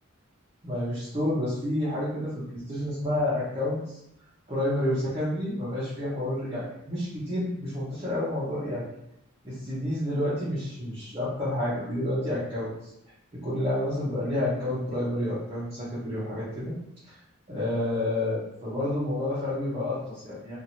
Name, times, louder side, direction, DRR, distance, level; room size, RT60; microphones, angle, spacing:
voice 1, 0.6-4.0 4.5-8.9 9.4-12.9 13.4-16.7 17.1-17.2 17.5-20.5, left 1 dB, 25° right, -11 dB, 0.9 m, -29 dB
2.8 x 2.6 x 2.8 m, 0.79 s
head